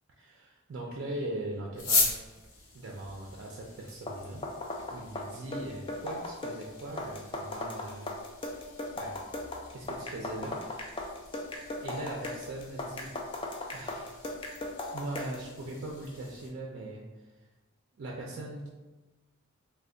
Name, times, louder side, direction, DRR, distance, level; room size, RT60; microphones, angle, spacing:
voice 1, 0.2-2.2 2.7-4.4 4.9-8.1 9.0-9.2 9.7-11.1 11.8-13.1 13.7-14.2 14.9-17.0 18.0-18.7, right 1 dB, 55° right, -1 dB, 0.4 m, -40 dB
sound 1, 1.7-16.5, left 3 dB, 75° left, 0.8 m, -39 dB
sound 2, 3.9-15.5, left 2 dB, 25° left, 0.3 m, -38 dB
3.2 x 2.1 x 3.7 m, 1.2 s
head